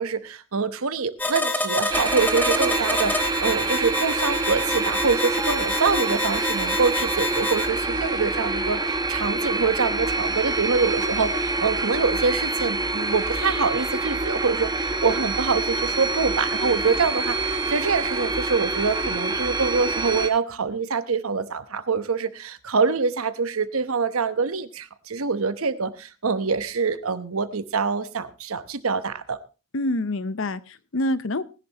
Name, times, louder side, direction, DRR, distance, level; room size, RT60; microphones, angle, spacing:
voice 1, 0.0-29.4, right 5 dB, 80° right, 1.0 m, -25 dB
sound 1, 1.2-7.7, left 2 dB, 10° left, 1.0 m, -27 dB
sound 2, 1.9-20.3, right 3 dB, 20° right, 1.0 m, -26 dB
voice 2, 29.7-31.4, left 1 dB, 65° left, 0.7 m, -26 dB
19.5 x 11.0 x 2.9 m
head